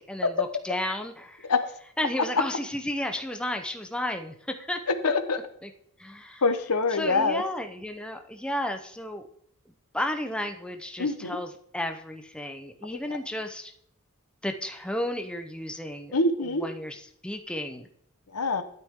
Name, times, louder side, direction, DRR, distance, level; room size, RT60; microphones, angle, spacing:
voice 1, 0.0-1.5 2.0-4.4 4.7-4.8 5.6-5.7 6.0-6.4 6.9-9.3 9.9-13.7 14.4-17.9, left 1 dB, 5° left, 5 dB, 0.7 m, -33 dB
voice 2, 5.0-5.4 6.4-7.4 11.0-11.4 16.1-16.6 18.3-18.6, left 3 dB, 85° left, 9 dB, 1.1 m, -24 dB
12.5 x 8.7 x 3.7 m, 0.69 s
head